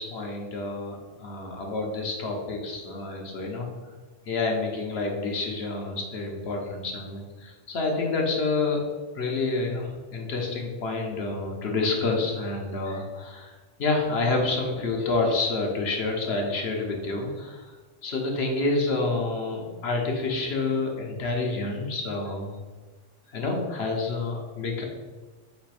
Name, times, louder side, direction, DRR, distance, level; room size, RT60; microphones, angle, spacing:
voice 1, 0.0-3.7 4.3-8.8 9.1-17.7 18.0-22.6 23.3-24.8, left 3 dB, 60° left, 1 dB, 1.0 m, -28 dB
3.3 x 3.3 x 4.7 m, 1.3 s
omnidirectional pair, 1.3 m